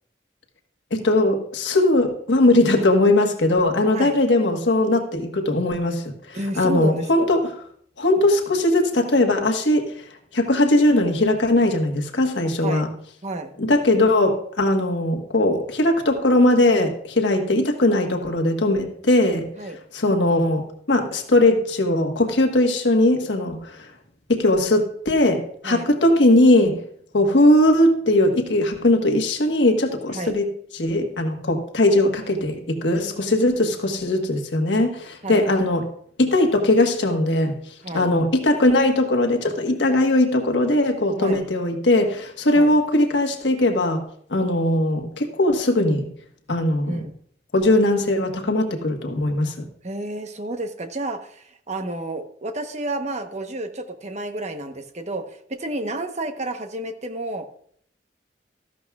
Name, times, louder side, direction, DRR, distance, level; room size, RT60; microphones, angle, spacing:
voice 1, 0.9-7.5 8.0-10.0 10.3-12.9 13.6-23.9 24.3-26.8 27.1-35.8 36.2-46.0 46.5-47.0 47.5-49.6, left 1 dB, 85° left, 4 dB, 1.4 m, -20 dB
voice 2, 6.3-7.3 12.6-12.9 13.2-13.5 19.6-19.8 25.6-25.9 30.1-30.4 35.2-35.5 37.8-38.1 41.2-41.4 42.5-42.7 46.9-47.1 49.8-57.5, right 2 dB, 40° right, 7 dB, 1.0 m, -30 dB
14.0 x 11.5 x 2.4 m, 0.64 s
head